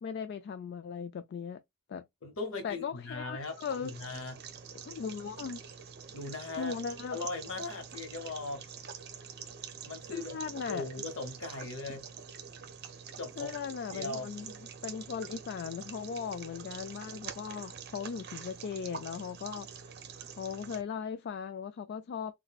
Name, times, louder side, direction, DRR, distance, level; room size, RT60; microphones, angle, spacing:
voice 1, 0.0-1.6 1.9-2.0 2.6-3.9 4.8-5.6 6.6-7.2 10.1-10.9 13.4-14.5 14.8-19.7 20.2-22.4, left 6 dB, 50° left, 0.3 m, -38 dB
voice 2, 2.2-4.4 6.1-6.8 7.1-8.7 9.8-10.4 10.7-12.1 13.2-13.6 13.9-14.3, left 3 dB, 70° left, 0.9 m, -39 dB
sound 1, 3.4-20.8, right 7 dB, 50° right, 0.6 m, -46 dB
4.0 x 2.2 x 2.2 m
head